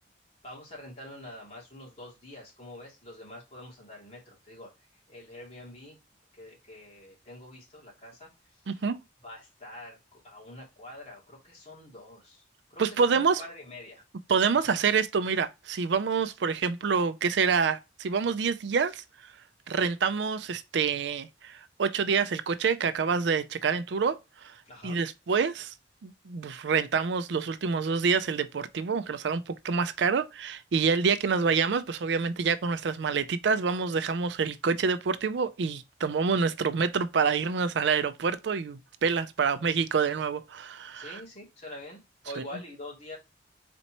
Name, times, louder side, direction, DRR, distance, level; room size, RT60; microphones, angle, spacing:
voice 1, 0.4-4.7 5.1-6.0 6.3-8.8 9.2-12.4 12.7-14.0 14.5-14.8 24.7-25.0 40.9-43.2, left 1 dB, 35° left, 2.6 m, -46 dB
voice 2, 8.7-9.0 12.8-13.4 14.3-19.0 19.7-24.2 24.4-24.5 24.8-25.7 26.0-41.2, right 5 dB, 70° right, 0.4 m, -27 dB
4.2 x 4.1 x 2.9 m
head